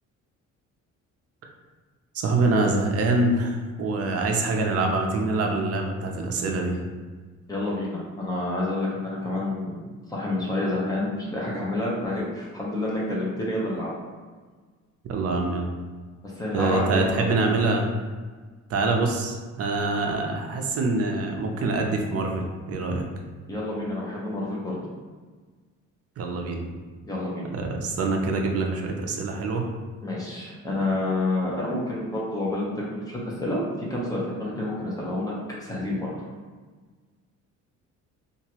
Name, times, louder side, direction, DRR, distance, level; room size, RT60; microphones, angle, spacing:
voice 1, 2.1-6.8 15.1-15.7 16.5-17.8 18.7-23.0 26.2-26.7 27.5-29.7, right 3 dB, 50° right, 2 dB, 0.5 m, -25 dB
voice 2, 7.5-9.8 10.1-13.9 16.4-17.3 23.5-24.8 27.0-27.5 30.0-33.6 33.9-35.3 35.6-36.1, left 2 dB, 10° left, -6 dB, 0.8 m, -28 dB
2.9 x 2.6 x 2.9 m, 1.4 s
cardioid pair, 140°, 31 cm